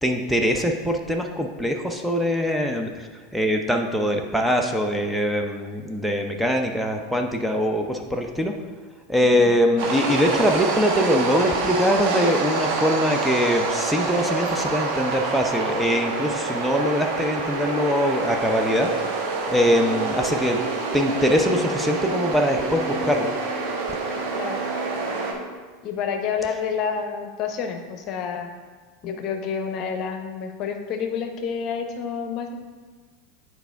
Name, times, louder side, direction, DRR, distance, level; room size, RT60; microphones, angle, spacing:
voice 1, 0.0-3.1 3.3-8.5 9.1-18.9 19.5-20.6 20.9-23.3, equal, ahead, 2 dB, 0.6 m, -22 dB
sound 1, 9.8-25.3, right 3 dB, 65° right, 1.0 m, -27 dB
voice 2, 25.8-28.5 29.0-32.6, left 6 dB, 50° left, 5 dB, 0.8 m, -29 dB
8.1 x 4.5 x 3.4 m, 1.5 s
hypercardioid pair, 95°, 0 cm